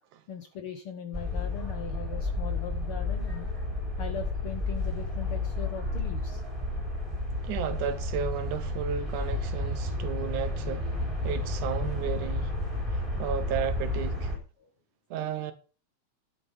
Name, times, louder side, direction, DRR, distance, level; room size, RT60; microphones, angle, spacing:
voice 1, 0.3-3.5 4.0-6.4 14.6-14.7, left 8 dB, 65° left, 1.4 m, -40 dB
sound 1, 1.1-14.4, left 2 dB, 10° right, 3.2 m, -31 dB
voice 2, 7.4-10.9 11.2-12.5 12.9-14.3 15.1-15.5, right 8 dB, 80° right, 2.6 m, -33 dB
11.5 x 7.7 x 5.4 m
omnidirectional pair, 3.6 m